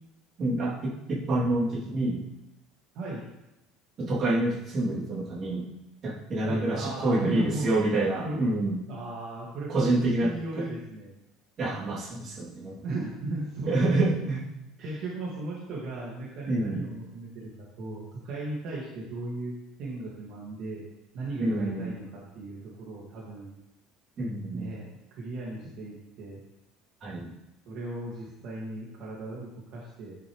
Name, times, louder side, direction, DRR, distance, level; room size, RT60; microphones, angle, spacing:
voice 1, 0.4-2.2 4.0-5.7 6.0-8.8 9.7-10.6 11.6-12.8 13.7-14.4 16.5-16.8 21.4-21.9 24.2-24.7 27.0-27.3, right 2 dB, 30° right, -7 dB, 3.0 m, -27 dB
voice 2, 6.4-7.7 8.2-8.4 8.9-11.1 12.8-13.9 14.8-17.5 17.8-19.5 19.8-20.8 21.1-23.5 24.5-24.8 25.2-26.4 27.7-30.2, right 2 dB, 50° right, -5 dB, 2.2 m, -36 dB
10.5 x 7.0 x 3.3 m, 0.89 s
cardioid pair, 180°, 0 cm